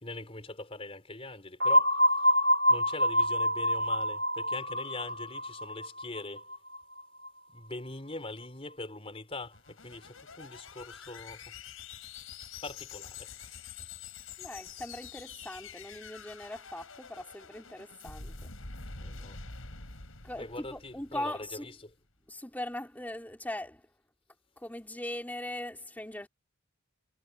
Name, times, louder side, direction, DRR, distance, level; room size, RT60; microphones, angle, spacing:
voice 1, 0.0-1.9 2.2-2.3 2.7-6.5 7.5-11.5 12.6-13.6 19.0-19.4 20.4-21.7, left 2 dB, 25° left, 4.1 m, -42 dB
sound 1, 1.6-7.3, equal, 50° right, 2.1 m, -27 dB
sound 2, 9.3-21.7, left 5 dB, 75° left, 4.6 m, -47 dB
voice 2, 14.4-18.4 20.2-21.7 22.3-23.9 24.6-26.3, left 1 dB, 10° left, 3.2 m, -40 dB
head